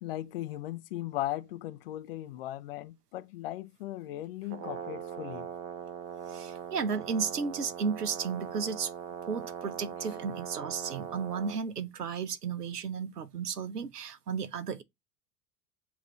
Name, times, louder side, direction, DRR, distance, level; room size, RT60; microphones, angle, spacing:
voice 1, 0.0-5.5, left 14 dB, 40° left, 0.4 m, -37 dB
Brass instrument, 4.4-11.6, right 8 dB, 25° right, 0.4 m, -41 dB
voice 2, 6.3-8.9 9.3-14.8, right 6 dB, 80° right, 0.7 m, -34 dB
7.1 x 2.6 x 2.9 m
figure-of-eight pair, 85°, 46 cm